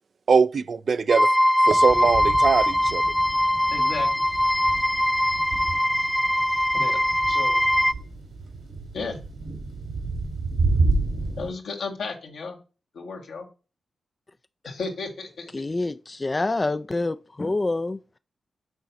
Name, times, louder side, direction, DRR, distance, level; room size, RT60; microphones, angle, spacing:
voice 1, 0.3-1.3 1.7-3.0, right 5 dB, 60° right, 0.4 m, -21 dB
sound 1, 1.1-7.9, equal, 5° left, 0.9 m, -21 dB
sound 2, 1.7-11.5, right 3 dB, 85° right, 2.5 m, -30 dB
voice 2, 3.7-4.1 6.7-7.0 7.3-7.6 8.9-9.2 11.4-12.6 12.9-13.5 14.6-15.5, left 4 dB, 80° left, 1.7 m, -33 dB
voice 3, 15.5-18.2, left 2 dB, 30° left, 0.3 m, -27 dB
6.4 x 4.0 x 5.8 m
cardioid pair, 65°, 0 cm